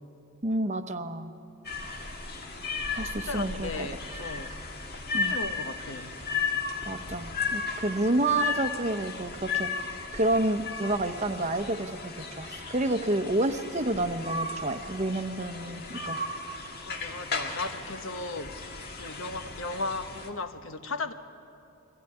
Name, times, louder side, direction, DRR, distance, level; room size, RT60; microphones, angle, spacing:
voice 1, 0.4-1.3 2.9-3.7 5.1-5.4 6.8-16.2, right 2 dB, 30° right, 8 dB, 0.9 m, -29 dB
sound 1, 1.6-20.3, left 4 dB, 45° left, 1.9 m, -35 dB
voice 2, 2.6-4.6 5.1-6.1 16.8-18.6 19.0-21.1, left 3 dB, 60° left, 8 dB, 1.2 m, -36 dB
23.0 x 16.5 x 9.9 m, 2.9 s
head